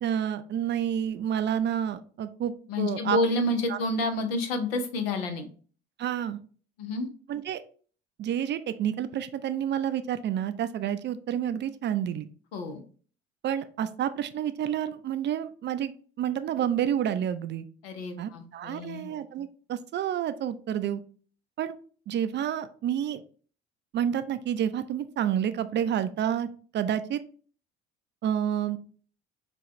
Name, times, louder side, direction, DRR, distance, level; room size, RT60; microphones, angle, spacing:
voice 1, 0.0-3.2 3.7-3.8 6.0-6.4 7.3-7.6 8.2-12.3 13.4-17.7 18.2-21.0 21.6-21.7 22.1-23.2 23.9-26.5 26.7-27.2 28.2-28.8, right 9 dB, 40° right, 11 dB, 0.4 m, -29 dB
voice 2, 2.7-5.5 6.8-7.1 12.5-12.8 17.8-19.1, left 2 dB, 80° left, 6 dB, 0.8 m, -29 dB
5.8 x 2.3 x 2.9 m, 0.42 s
hypercardioid pair, 55°, 30 cm